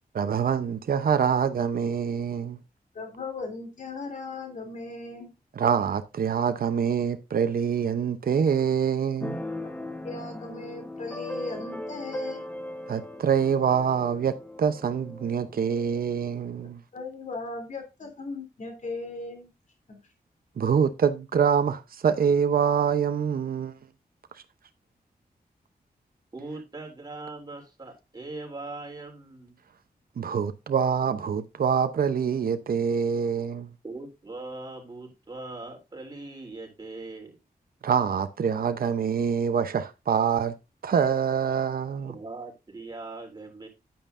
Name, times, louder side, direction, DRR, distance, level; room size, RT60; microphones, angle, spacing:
voice 1, 0.1-2.6 5.6-9.4 12.9-16.8 20.6-23.7 30.2-33.7 37.8-40.5 40.8-42.1, right 7 dB, 70° right, 0.8 m, -25 dB
voice 2, 2.9-5.3 10.0-12.4 16.9-19.5 19.9-20.0, left 3 dB, 50° left, 3.1 m, -37 dB
Keyboard (musical), 9.2-16.7, left 1 dB, 10° left, 1.0 m, -38 dB
voice 3, 26.3-29.6 33.8-37.4 42.1-43.7, right 2 dB, 25° right, 3.2 m, -40 dB
10.5 x 9.0 x 2.6 m
wide cardioid pair, 175°, 16 cm